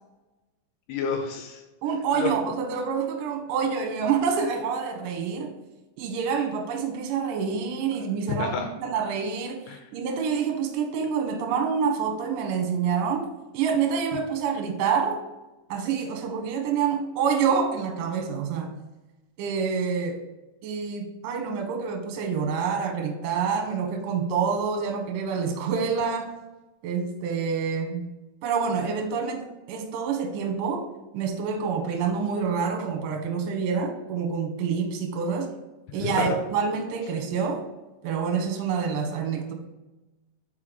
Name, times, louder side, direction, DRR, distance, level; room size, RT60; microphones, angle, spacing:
voice 1, 0.9-1.6 2.1-2.3 8.3-8.7 9.7-9.9 36.0-36.4, left 6 dB, 80° left, 3 dB, 2.5 m, -29 dB
voice 2, 1.8-5.5 6.0-13.3 13.5-15.2 15.7-18.7 19.4-20.2 20.6-26.3 26.8-28.0 28.4-30.9 31.1-35.5 35.9-37.6 38.0-39.5, right 6 dB, 70° right, 4 dB, 2.1 m, -27 dB
5.7 x 4.8 x 5.0 m, 1.1 s
omnidirectional pair, 5.0 m